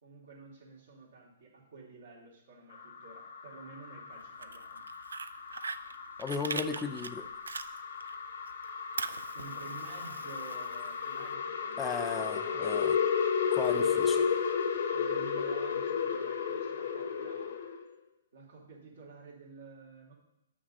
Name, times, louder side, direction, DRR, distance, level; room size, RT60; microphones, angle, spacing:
voice 1, 0.0-4.8 9.3-14.6 14.9-17.5 18.3-20.1, right 4 dB, 75° right, -3 dB, 2.7 m, -51 dB
sound 1, 2.7-17.8, left 6 dB, 70° left, 0.9 m, -33 dB
Fire, 4.2-8.2 8.5-11.3, right 4 dB, 90° right, 0.3 m, -41 dB
voice 2, 6.2-7.3 11.8-12.9 13.5-14.2, left 5 dB, 15° left, 7 dB, 0.5 m, -36 dB
7.9 x 6.1 x 3.9 m, 0.84 s
hypercardioid pair, 130°, 0 cm